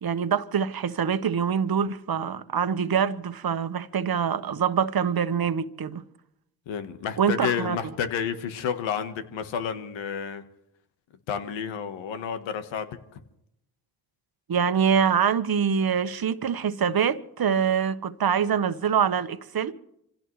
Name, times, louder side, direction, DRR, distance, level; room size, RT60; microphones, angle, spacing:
voice 1, 0.0-6.0 7.2-7.8 14.5-19.7, right 7 dB, 50° right, 1.2 m, -25 dB
voice 2, 6.7-10.4 11.3-13.2, left 7 dB, 85° left, 1.4 m, -30 dB
26.0 x 16.5 x 3.2 m
supercardioid pair, 50°, 45 cm